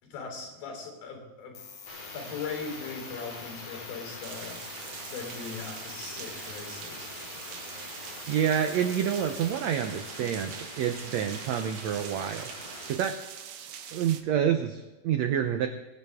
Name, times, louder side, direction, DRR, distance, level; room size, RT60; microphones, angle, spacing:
voice 1, 0.0-1.6 2.1-4.6 5.1-7.1, left 5 dB, 85° left, 2 dB, 5.4 m, -39 dB
sound 1, 1.5-9.5, left 8 dB, 65° left, 3.1 m, -47 dB
sound 2, 1.8-12.9, left 1 dB, 35° left, 5.1 m, -44 dB
sound 3, 4.2-14.2, right 9 dB, 70° right, 1.9 m, -44 dB
voice 2, 8.3-12.5 12.9-13.1 13.9-15.7, right 9 dB, 90° right, 6 dB, 1.5 m, -28 dB
23.5 x 9.7 x 3.6 m, 1.2 s
omnidirectional pair, 4.1 m